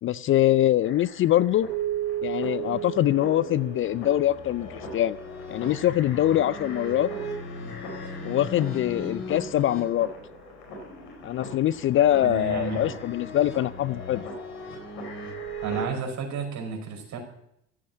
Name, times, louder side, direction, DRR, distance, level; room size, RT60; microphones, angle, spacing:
voice 1, 0.0-1.7 2.2-5.2 5.5-7.1 8.2-10.1 11.2-14.3, left 12 dB, 35° left, 20 dB, 0.4 m, -23 dB
sound 1, 0.8-15.8, equal, 70° left, 4.2 m, -38 dB
Keyboard (musical), 1.7-4.7, right 12 dB, 75° right, 3.5 m, -33 dB
voice 2, 12.2-12.9 15.6-17.2, right 5 dB, 50° right, 2 dB, 5.4 m, -31 dB
14.0 x 8.6 x 8.5 m, 0.75 s
hypercardioid pair, 70°, 36 cm